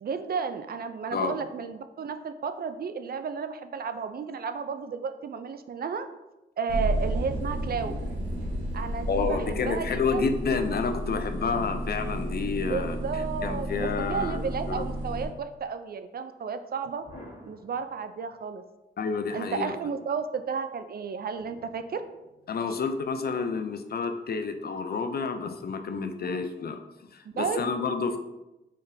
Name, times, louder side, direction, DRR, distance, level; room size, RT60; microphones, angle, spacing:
voice 1, 0.0-6.1 6.6-8.0 8.7-10.3 12.7-17.0 17.5-18.6 19.3-22.0 22.7-22.8 27.2-27.6, right 5 dB, 50° right, 10 dB, 0.4 m, -33 dB
sound 1, 6.7-15.3, right 1 dB, 75° right, 1.0 m, -32 dB
voice 2, 9.1-13.0 13.4-14.4 14.7-14.8 19.0-19.7 22.5-26.8 27.1-28.2, left 5 dB, 50° left, 8 dB, 0.5 m, -29 dB
sound 2, 17.0-18.4 21.4-22.8, left 1 dB, 75° left, 1.3 m, -53 dB
3.7 x 3.6 x 2.7 m, 0.97 s
supercardioid pair, 50°, 20 cm